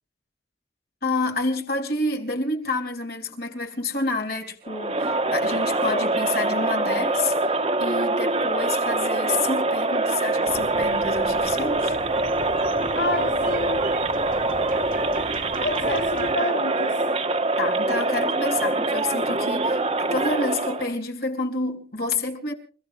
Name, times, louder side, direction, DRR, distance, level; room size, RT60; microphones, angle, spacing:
voice 1, 1.0-12.0 17.6-22.5, left 3 dB, 60° left, 3.8 m, -29 dB
Crowd, 4.6-20.9, right 2 dB, 35° right, 1.4 m, -24 dB
sound 1, 10.4-16.3, right 2 dB, 55° right, 1.8 m, -38 dB
voice 2, 12.9-13.9 15.6-17.1, left 2 dB, 85° left, 1.9 m, -29 dB
29.0 x 16.0 x 2.6 m
head